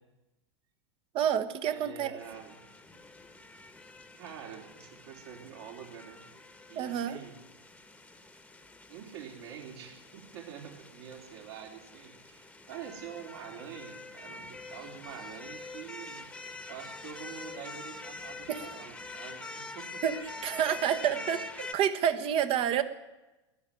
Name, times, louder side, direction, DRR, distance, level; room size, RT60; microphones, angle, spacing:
voice 1, 1.1-2.1 6.7-7.2 18.5-18.6 20.0-20.2 20.4-22.8, right 9 dB, 40° right, 10 dB, 1.2 m, -28 dB
voice 2, 1.7-2.5 4.1-6.3 6.7-7.4 8.9-16.3 16.7-20.0 21.1-21.3, right 8 dB, 60° right, 1 dB, 3.7 m, -46 dB
sound 1, 2.2-21.7, left 3 dB, 10° left, 1.3 m, -46 dB
14.0 x 11.0 x 9.3 m, 1.1 s
figure-of-eight pair, 90°, 15 cm